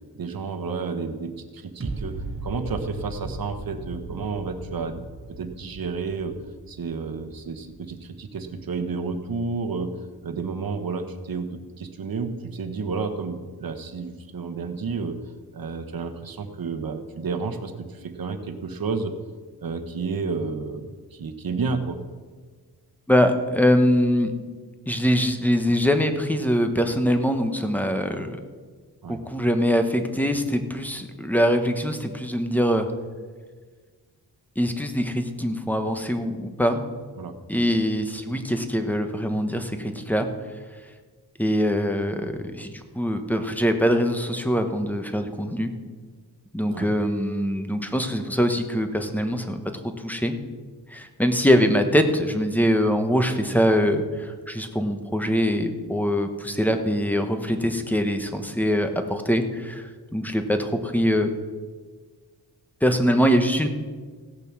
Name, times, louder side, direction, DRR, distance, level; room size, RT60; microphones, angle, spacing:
voice 1, 0.2-6.4 6.7-15.2 15.5-19.2 19.6-22.0 29.0-29.2 37.2-37.6 46.7-47.0, right 4 dB, 60° right, 7 dB, 1.2 m, -31 dB
sound 1, 1.8-8.8 9.3-9.4, right 2 dB, 35° right, 1.3 m, -37 dB
voice 2, 23.1-24.3 24.9-28.4 29.1-32.9 34.6-36.8 37.5-40.3 41.4-45.7 46.5-49.6 49.8-50.3 50.9-59.8 60.1-61.3 62.8-63.7, equal, 5° left, 6 dB, 1.1 m, -23 dB
17.0 x 6.8 x 6.1 m, 1.5 s
wide cardioid pair, 95°, 39 cm